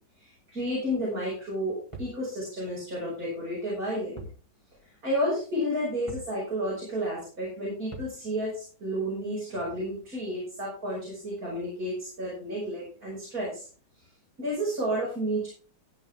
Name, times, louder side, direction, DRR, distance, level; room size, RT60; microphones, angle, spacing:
voice 1, 0.2-4.2 5.0-13.7 14.4-15.5, equal, 55° right, -6 dB, 6.7 m, -31 dB
sound 1, 1.9-2.2 4.2-4.4 4.8-4.9 6.1-6.4 7.9-8.2, right 2 dB, 15° right, 2.6 m, -41 dB
15.0 x 8.8 x 3.6 m, 0.38 s
omnidirectional pair, 1.8 m